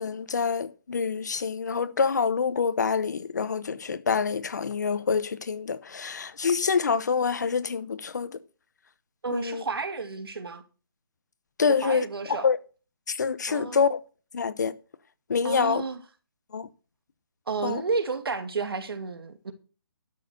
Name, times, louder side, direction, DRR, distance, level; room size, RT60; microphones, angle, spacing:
voice 1, 0.0-8.3 9.3-9.6 11.6-12.6 13.1-14.0 14.3-14.7 15.3-15.8 16.5-16.7 17.6-17.8, left 5 dB, 50° left, 0.9 m, -26 dB
voice 2, 9.2-10.6 11.7-12.5 13.5-13.8 15.4-16.0 17.5-19.5, right 4 dB, 80° right, 2.4 m, -31 dB
12.0 x 6.9 x 6.6 m
hypercardioid pair, 175°, 12 cm